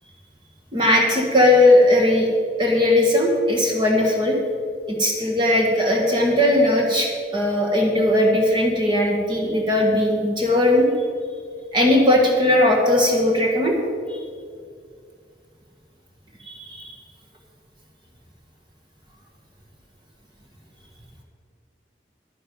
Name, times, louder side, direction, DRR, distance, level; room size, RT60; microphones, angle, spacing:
voice 1, 0.7-2.3 2.6-4.4 4.9-10.9 11.7-13.8 14.1-14.2 16.5-16.9, left 1 dB, 25° right, -1 dB, 1.4 m, -18 dB
10.5 x 10.0 x 5.3 m, 2.2 s
head